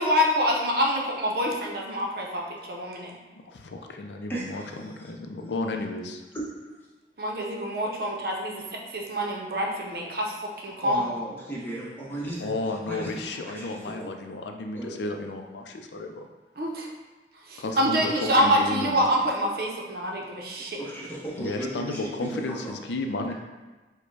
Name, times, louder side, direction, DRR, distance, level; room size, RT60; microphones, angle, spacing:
voice 1, 0.0-3.1 7.2-11.1 16.6-16.9 17.5-20.8, equal, 55° right, -1 dB, 0.7 m, -26 dB
voice 2, 3.4-6.2 12.4-16.3 17.6-19.1 21.4-23.3, left 2 dB, 80° left, 4 dB, 0.4 m, -33 dB
voice 3, 4.3-4.9 6.3-6.5 10.8-12.5 12.9-14.1 14.7-15.0 20.8-22.8 23.3-23.4, right 1 dB, 10° left, -5 dB, 0.9 m, -36 dB
5.0 x 2.2 x 4.7 m, 1.2 s
head